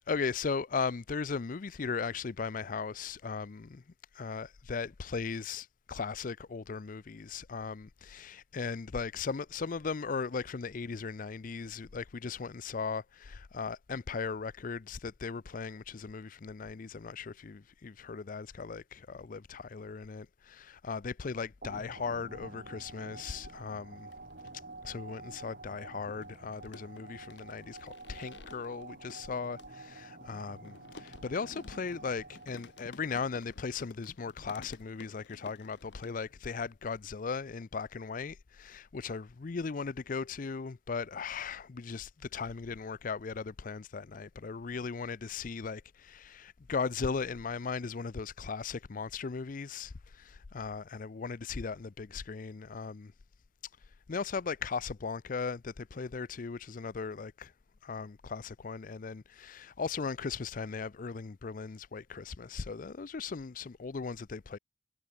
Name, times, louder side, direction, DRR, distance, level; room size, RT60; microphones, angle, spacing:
voice 1, 0.1-3.8 4.1-24.1 24.8-53.1 54.1-57.5 57.8-64.6, left 5 dB, 45° left, 0.5 m, -37 dB
sound 1, 21.6-33.0, right 2 dB, 50° right, 5.1 m, -49 dB
sound 2, 24.0-24.9 25.3-36.6 36.8-37.4, left 3 dB, 70° left, 1.3 m, -55 dB
head